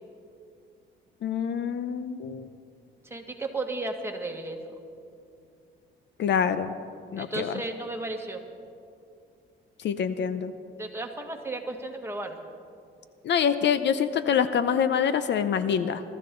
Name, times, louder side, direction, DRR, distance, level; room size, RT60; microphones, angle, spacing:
voice 1, 1.2-2.5 6.2-6.7 7.1-7.6 9.8-10.5 13.2-16.0, left 7 dB, 65° left, 12 dB, 0.7 m, -26 dB
voice 2, 3.1-4.8 7.2-8.4 10.8-12.4, right 2 dB, 10° right, 2 dB, 1.8 m, -34 dB
22.0 x 13.5 x 3.9 m, 2.4 s
cardioid pair, 90°, 20 cm